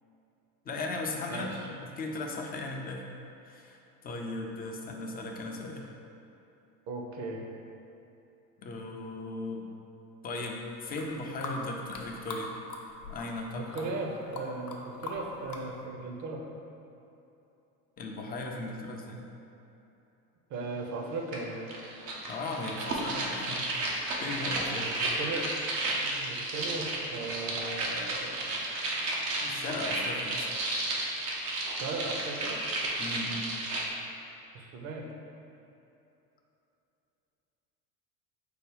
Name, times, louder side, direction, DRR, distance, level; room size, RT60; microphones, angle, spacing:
voice 1, 0.7-3.0 3.4-5.9 8.6-9.7 10.2-12.5 13.1-13.9 18.0-19.2 22.3-23.9 24.2-24.9 29.4-30.5 33.0-33.5, left 2 dB, 20° left, 1 dB, 0.5 m, -37 dB
voice 2, 1.3-1.7 6.9-7.4 13.5-16.4 20.5-21.7 24.8-25.5 26.0-28.4 31.8-32.6 34.5-35.1, right 3 dB, 35° right, 1 dB, 0.7 m, -37 dB
sound 1, 10.8-12.4 12.7-13.5 13.7-14.8 15.0-15.6, left 4 dB, 85° left, 0.7 m, -40 dB
sound 2, 21.3-21.4 21.7-33.9, right 2 dB, 80° right, 1.0 m, -32 dB
4.8 x 2.3 x 4.8 m, 2.9 s
hypercardioid pair, 80°, 48 cm